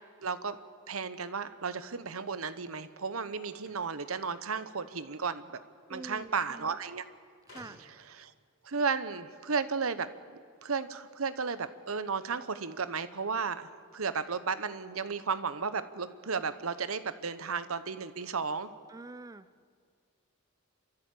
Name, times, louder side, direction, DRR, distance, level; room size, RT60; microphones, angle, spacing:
voice 1, 0.2-0.6 0.9-5.6 5.9-7.1 8.1-8.3 8.6-10.1 10.6-18.7, right 5 dB, 80° right, 13 dB, 1.0 m, -34 dB
sound 1, 3.6-5.0 6.1-6.2 6.4-6.5 7.5-8.1, left 2 dB, 70° left, 4.8 m, -56 dB
voice 2, 5.9-6.8 7.5-7.8 18.9-19.7, right 2 dB, 15° right, 12 dB, 0.5 m, -46 dB
29.5 x 13.5 x 8.5 m, 2.1 s
head